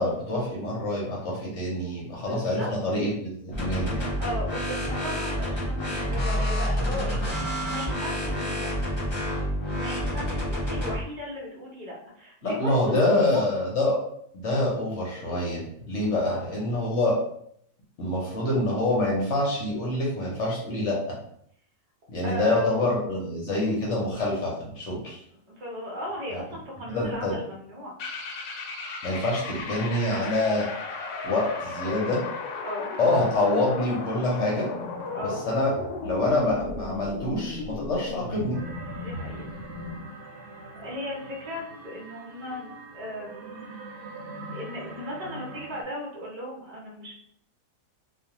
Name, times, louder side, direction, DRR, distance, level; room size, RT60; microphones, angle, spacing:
voice 1, 0.0-4.1 12.4-14.0 14.3-17.2 18.0-21.2 22.1-25.2 26.9-27.3 29.0-30.7 31.2-32.2 33.0-34.7 35.2-35.7 36.0-38.6, left 2 dB, 60° left, -4 dB, 0.9 m, -26 dB
voice 2, 2.2-2.7 4.2-7.2 7.4-8.7 9.6-13.7 16.2-16.5 22.2-22.8 25.5-27.9 32.6-32.9 35.1-35.4 38.9-39.4 40.8-43.6 44.5-47.1, equal, 40° right, -4 dB, 0.6 m, -36 dB
sound 1, 3.5-11.0, equal, 30° left, 0.5 m, -28 dB
sound 2, 28.0-40.1, left 3 dB, 80° left, 1.1 m, -36 dB
sound 3, 38.5-45.8, right 2 dB, 85° right, 1.2 m, -42 dB
2.5 x 2.4 x 2.9 m, 0.69 s
omnidirectional pair, 1.7 m